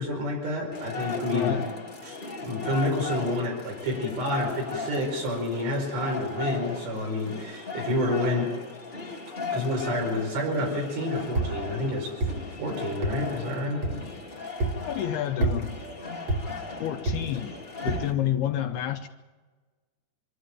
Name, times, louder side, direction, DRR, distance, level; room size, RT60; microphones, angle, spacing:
voice 1, 0.0-1.6 2.0-8.5 9.5-12.3 12.6-14.0, left 1 dB, 75° right, 0 dB, 7.1 m, -29 dB
sound 1, 0.7-18.1, left 4 dB, 35° left, 0.8 m, -37 dB
voice 2, 1.3-1.7 14.9-15.7 16.8-17.6 17.8-19.1, left 11 dB, 75° left, 5 dB, 2.4 m, -29 dB
sound 2, 11.3-11.5 12.2-12.3 13.0-13.2 13.8-14.0 14.6-14.8 15.4-15.6 16.3-16.4 17.1-17.2 17.9-18.1, right 2 dB, 45° right, 2.9 m, -26 dB
25.0 x 12.5 x 9.0 m, 1.3 s
omnidirectional pair, 5.1 m